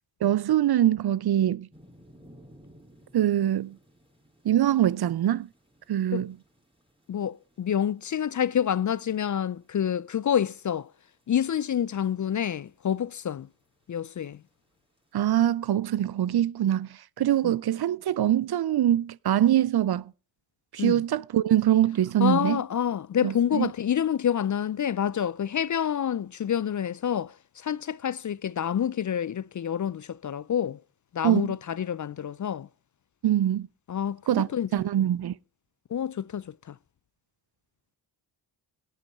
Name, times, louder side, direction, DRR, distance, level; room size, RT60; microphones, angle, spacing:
voice 1, 0.2-1.7 3.1-3.8 4.4-5.5 5.9-6.3 15.1-20.1 20.7-22.6 23.2-23.7 31.2-31.5 33.2-33.7 34.3-35.3, right 11 dB, 55° right, 0.5 m, -24 dB
sound 1, 1.7-15.5, equal, 10° right, 4.9 m, -60 dB
voice 2, 7.1-10.9 11.3-13.5 13.9-14.4 17.4-17.5 20.8-21.0 22.2-30.8 31.1-32.7 33.9-34.7 35.9-36.8, left 9 dB, 40° left, 0.5 m, -28 dB
17.0 x 8.4 x 3.6 m
supercardioid pair, 40°, 49 cm